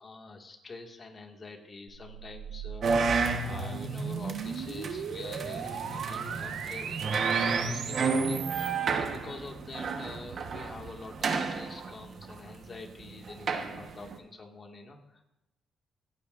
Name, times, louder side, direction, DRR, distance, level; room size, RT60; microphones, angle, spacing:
voice 1, 0.0-3.1 3.4-15.2, left 3 dB, 35° left, 2 dB, 2.2 m, -46 dB
sound 1, 1.9-8.7, right 7 dB, 85° right, 1.2 m, -38 dB
sound 2, 2.8-14.2, right 4 dB, 55° right, 1.4 m, -32 dB
26.5 x 9.3 x 2.7 m, 0.93 s
cardioid pair, 90°, 0 cm